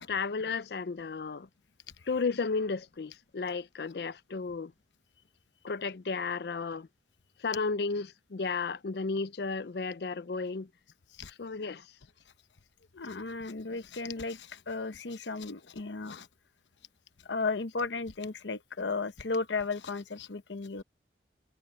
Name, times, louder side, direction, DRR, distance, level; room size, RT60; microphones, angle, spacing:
voice 1, 0.1-1.5 2.1-4.7 5.6-6.9 7.4-10.7 11.3-11.9, left 4 dB, 65° left, 0.5 m, -33 dB
voice 2, 12.9-16.3 17.2-20.8, left 4 dB, 90° left, 0.9 m, -35 dB
head